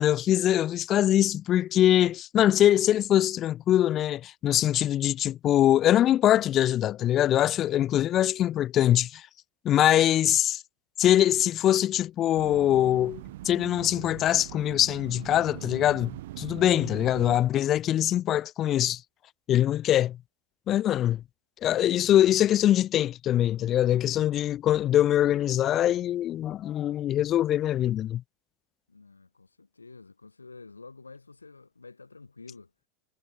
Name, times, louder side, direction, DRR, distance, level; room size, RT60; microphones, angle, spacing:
voice 1, 0.0-9.3 9.7-10.6 11.0-16.1 16.4-19.0 19.5-20.2 20.7-21.2 21.6-28.2, left 12 dB, 35° left, 1.8 m, -23 dB
sound 1, 12.4-17.4, right 16 dB, 60° right, 6.6 m, -41 dB
voice 2, 28.9-32.7, left 3 dB, 85° left, 7.2 m, -49 dB
figure-of-eight pair, 80°, 0 cm